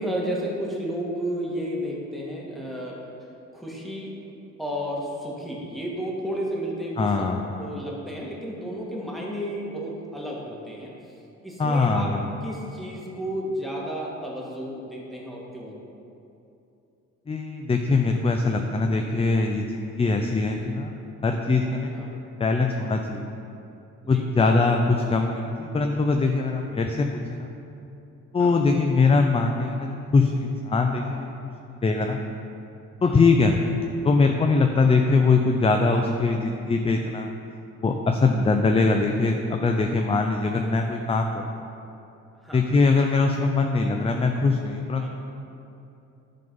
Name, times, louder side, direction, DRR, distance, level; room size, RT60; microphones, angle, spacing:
voice 1, 0.0-4.2 4.6-11.1 11.4-12.1 12.4-15.8 21.9-22.1 24.0-24.7 28.4-28.7 33.0-33.2 34.8-34.9 42.4-42.8 45.0-45.1, equal, ahead, -4 dB, 1.7 m, -32 dB
voice 2, 7.0-7.7 11.6-12.3 17.3-23.3 24.1-27.5 28.3-31.5 31.8-32.2 33.0-33.6 34.0-37.3 37.8-41.4 42.5-45.1, left 3 dB, 20° left, 3 dB, 0.4 m, -22 dB
11.0 x 3.8 x 5.4 m, 2.8 s
cardioid pair, 90°, 30 cm